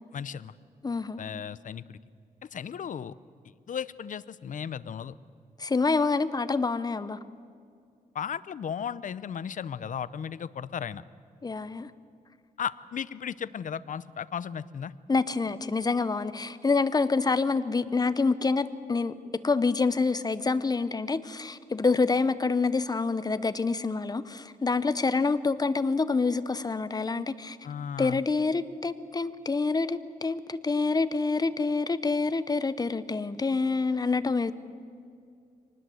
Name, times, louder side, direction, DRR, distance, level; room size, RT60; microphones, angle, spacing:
voice 1, 0.1-0.5 1.2-2.0 2.5-3.1 3.7-5.1 8.1-11.0 12.6-14.9 27.6-28.2, left 8 dB, 55° left, 17 dB, 0.7 m, -35 dB
voice 2, 0.8-1.2 5.6-7.2 11.4-11.9 15.1-27.6 28.0-34.5, left 4 dB, 25° left, 14 dB, 0.9 m, -27 dB
24.0 x 19.5 x 7.8 m, 2.3 s
wide cardioid pair, 120°, 16 cm